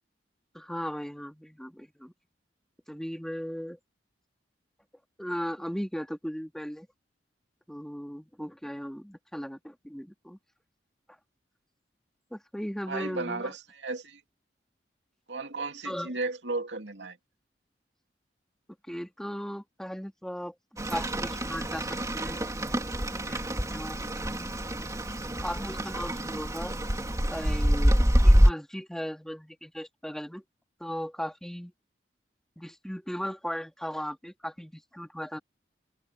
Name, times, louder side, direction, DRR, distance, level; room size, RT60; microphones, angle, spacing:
voice 1, 0.5-2.1 2.9-3.8 5.2-6.9 7.7-10.4 12.3-13.5 15.8-16.1 18.9-20.5 20.9-22.4 23.1-24.5 25.4-26.7 27.3-30.4 30.8-31.7 32.6-35.4, equal, 5° left, 2.0 m, -37 dB
voice 2, 12.9-14.2 15.3-17.2, right 3 dB, 85° right, 2.5 m, -34 dB
Rain, 20.8-28.5, equal, 20° right, 3.0 m, -26 dB
head